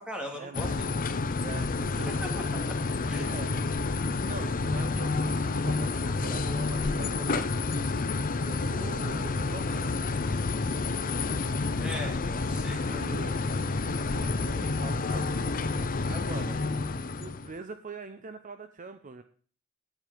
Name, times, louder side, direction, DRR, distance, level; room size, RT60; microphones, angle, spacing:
voice 1, 0.1-1.1 2.1-2.4 3.1-3.2 11.8-13.1, equal, 5° right, 2 dB, 2.5 m, -39 dB
sound 1, 0.5-17.5, left 3 dB, 40° left, 0.6 m, -29 dB
voice 2, 1.4-2.2 3.2-3.5 4.2-7.5 8.4-9.9 10.6-11.2 12.4-13.4 13.9-15.2 16.1-16.6 17.1-19.2, right 4 dB, 35° right, 9 dB, 0.6 m, -43 dB
10.5 x 9.4 x 5.0 m, 0.43 s
head